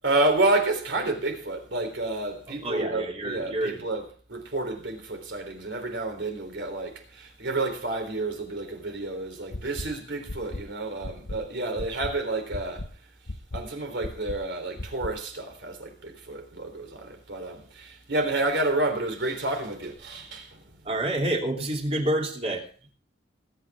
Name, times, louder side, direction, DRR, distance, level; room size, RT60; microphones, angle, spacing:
voice 1, 0.0-12.9 13.5-20.6, right 2 dB, 70° right, 3.7 m, -29 dB
voice 2, 2.5-3.8 20.8-22.7, right 1 dB, 35° right, 3.1 m, -28 dB
sound 1, 9.5-9.9 10.3-10.6 11.0-11.4 11.8-12.1 12.5-12.9 13.3-13.6 14.0-14.4 14.8-15.1, left 2 dB, 65° left, 1.1 m, -34 dB
21.0 x 9.2 x 3.6 m
head